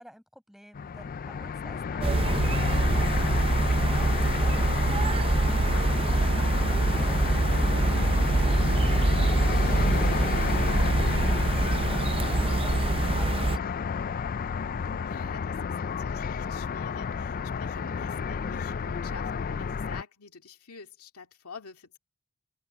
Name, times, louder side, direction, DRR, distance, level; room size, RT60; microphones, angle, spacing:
voice 1, 0.0-7.5, equal, ahead, 6.5 m, -52 dB
sound 1, 0.7-20.0, left 6 dB, 40° left, 0.4 m, -31 dB
sound 2, 2.0-13.6, right 2 dB, 25° right, 0.5 m, -24 dB
voice 2, 14.8-22.0, left 5 dB, 85° left, 2.1 m, -48 dB
open air
head